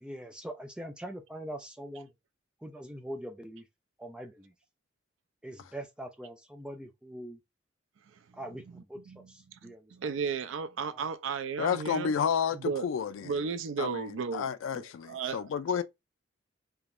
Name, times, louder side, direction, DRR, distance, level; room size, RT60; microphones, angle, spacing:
voice 1, 0.0-2.1 2.6-3.7 4.0-4.5 5.4-7.4 8.3-9.9 10.9-11.1, right 1 dB, 5° right, 0.3 m, -43 dB
voice 2, 9.1-12.1 12.6-12.9 13.2-15.4, right 5 dB, 80° right, 0.4 m, -35 dB
voice 3, 11.6-13.4 13.8-15.8, left 7 dB, 85° left, 0.3 m, -31 dB
3.6 x 2.8 x 2.4 m
head